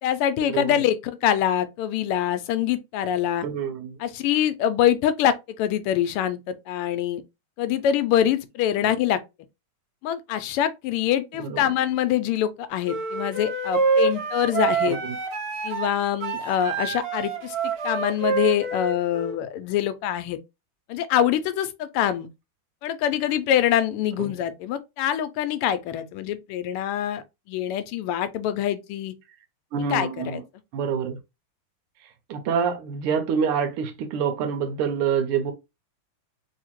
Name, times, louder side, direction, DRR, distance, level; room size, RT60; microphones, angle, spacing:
voice 1, 0.0-3.5 4.0-7.2 7.6-9.2 10.0-15.0 15.6-17.6 17.8-20.4 20.9-22.3 22.8-29.1 29.9-30.4, left 10 dB, 90° left, 1.5 m, -24 dB
voice 2, 3.4-4.0 8.8-8.9 11.4-11.7 14.9-15.1 24.2-24.3 29.7-30.4 30.7-31.2 32.3-35.5, right 7 dB, 90° right, 1.6 m, -26 dB
sound 1, 12.9-19.4, right 4 dB, 60° right, 1.1 m, -27 dB
3.6 x 2.8 x 2.9 m
omnidirectional pair, 2.4 m